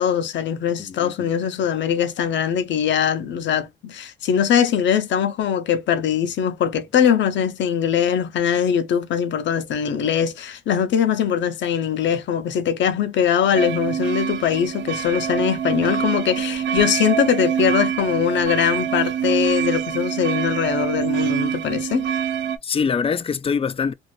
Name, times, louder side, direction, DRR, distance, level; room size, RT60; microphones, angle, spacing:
voice 1, 0.0-22.1, left 8 dB, 70° left, 0.8 m, -21 dB
voice 2, 0.8-1.3 22.6-23.9, left 6 dB, 30° left, 0.4 m, -24 dB
sound 1, 13.5-22.6, right 8 dB, 65° right, 0.6 m, -25 dB
2.7 x 2.5 x 3.1 m
cardioid pair, 90°, 20 cm